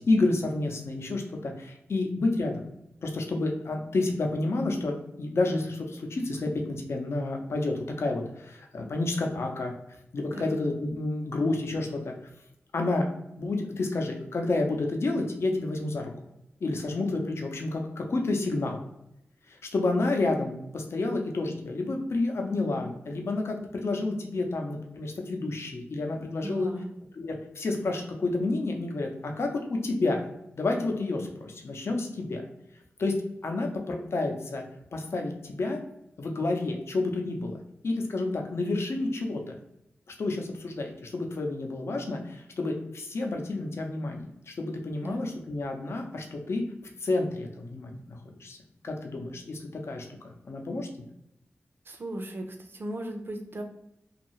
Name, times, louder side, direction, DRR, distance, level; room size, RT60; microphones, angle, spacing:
voice 1, 0.0-2.6 3.0-9.7 10.1-12.1 12.7-13.1 13.4-16.1 16.6-18.8 19.5-26.7 27.1-30.3 30.5-32.4 33.0-33.1 33.4-34.6 34.9-35.8 36.2-37.5 37.8-39.4 40.1-46.6 47.0-48.6 48.8-51.1, left 2 dB, 70° left, 2 dB, 0.5 m, -30 dB
voice 2, 26.4-26.9 45.0-45.2 51.8-53.6, right 1 dB, 55° right, 4 dB, 0.5 m, -37 dB
2.6 x 2.4 x 3.0 m, 0.82 s
wide cardioid pair, 90°, 5 cm